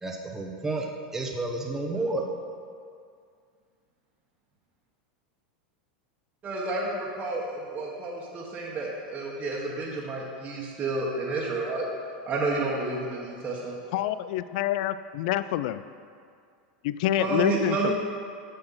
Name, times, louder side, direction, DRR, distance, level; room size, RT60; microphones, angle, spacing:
voice 1, 0.0-2.3, right 2 dB, 10° right, -1 dB, 1.1 m, -31 dB
voice 2, 6.4-11.9 12.3-13.8 17.2-17.9, right 2 dB, 30° right, -5 dB, 1.4 m, -30 dB
voice 3, 13.9-15.8 16.8-17.9, left 13 dB, 65° left, 14 dB, 0.3 m, -27 dB
7.3 x 6.8 x 5.9 m, 2.2 s
hypercardioid pair, 110°, 5 cm